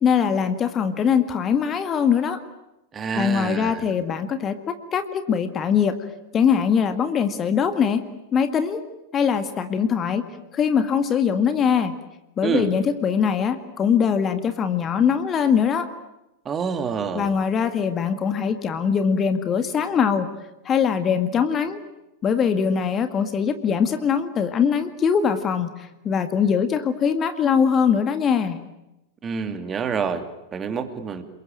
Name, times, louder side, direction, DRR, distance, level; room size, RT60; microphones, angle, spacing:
voice 1, 0.0-2.4 3.1-5.9 6.3-8.0 8.3-8.8 9.1-10.2 10.5-11.9 12.4-15.9 17.1-20.3 20.7-21.8 22.2-28.6, left 7 dB, 25° left, 9 dB, 2.0 m, -22 dB
voice 2, 2.9-3.9 12.4-12.7 16.4-17.4 29.2-31.2, right 6 dB, 20° right, 8 dB, 2.8 m, -27 dB
29.0 x 22.0 x 9.2 m, 0.92 s
figure-of-eight pair, 90°, 0 cm